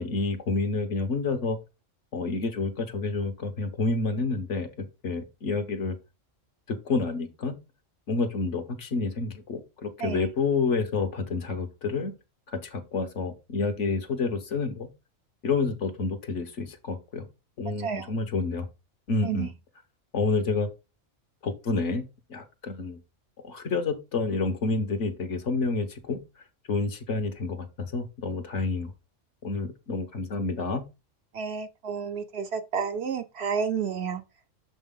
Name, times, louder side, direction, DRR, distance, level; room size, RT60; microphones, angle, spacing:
voice 1, 0.0-1.6 2.1-6.0 6.7-7.5 8.1-12.1 12.5-14.9 15.4-17.3 17.6-18.7 19.1-19.5 20.1-20.7 21.4-22.0 22.3-23.0 23.4-26.2 26.7-28.9 29.4-30.8, left 3 dB, 65° left, 1.4 m, -29 dB
voice 2, 17.8-18.1 19.2-19.5 31.3-34.2, right 6 dB, 60° right, 0.9 m, -30 dB
6.3 x 5.4 x 3.8 m
omnidirectional pair, 1.3 m